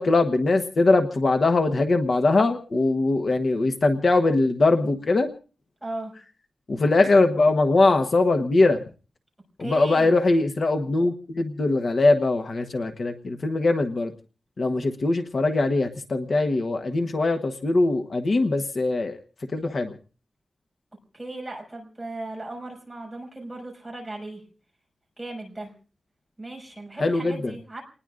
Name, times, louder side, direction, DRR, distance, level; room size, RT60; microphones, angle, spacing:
voice 1, 0.0-5.3 6.7-8.8 9.6-14.1 14.6-19.2 19.5-19.9 27.0-27.4, left 2 dB, 50° left, 6 dB, 1.1 m, -21 dB
voice 2, 5.8-6.1 9.6-10.1 21.1-24.4 25.2-25.7 26.4-27.8, right 2 dB, 5° right, -1 dB, 5.6 m, -36 dB
29.0 x 20.0 x 2.5 m, 0.38 s
wide cardioid pair, 165°, 0 cm